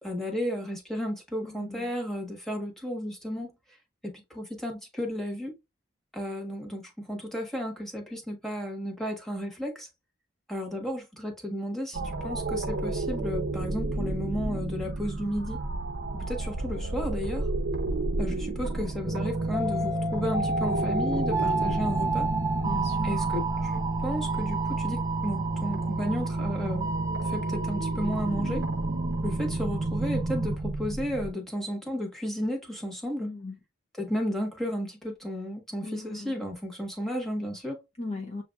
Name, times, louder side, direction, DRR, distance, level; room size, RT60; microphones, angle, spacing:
voice 1, 0.0-3.5 4.0-5.5 6.1-9.9 10.5-15.6 16.1-17.5 18.2-22.3 23.0-26.9 27.2-28.7 29.2-33.3 34.0-37.8, equal, ahead, 1.2 m, -33 dB
sound 1, 11.9-31.3, right 2 dB, 75° right, 0.6 m, -33 dB
sound 2, 19.0-30.6, right 2 dB, 20° right, 0.5 m, -29 dB
voice 2, 21.5-22.0 22.6-23.2 33.2-33.5 35.8-36.3 38.0-38.4, left 3 dB, 35° left, 0.6 m, -38 dB
6.9 x 2.5 x 2.3 m
head